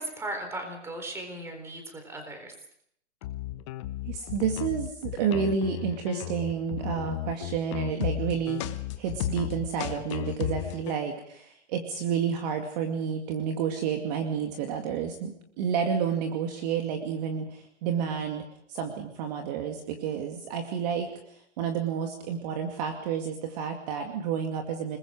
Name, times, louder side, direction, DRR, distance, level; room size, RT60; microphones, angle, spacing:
voice 1, 0.0-2.5, right 1 dB, 5° right, 5 dB, 4.0 m, -37 dB
sound 1, 3.2-10.9, left 14 dB, 25° left, 0.9 m, -34 dB
voice 2, 4.0-25.0, right 7 dB, 35° right, 4 dB, 2.3 m, -30 dB
29.0 x 20.5 x 4.9 m, 0.70 s
hypercardioid pair, 150°, 37 cm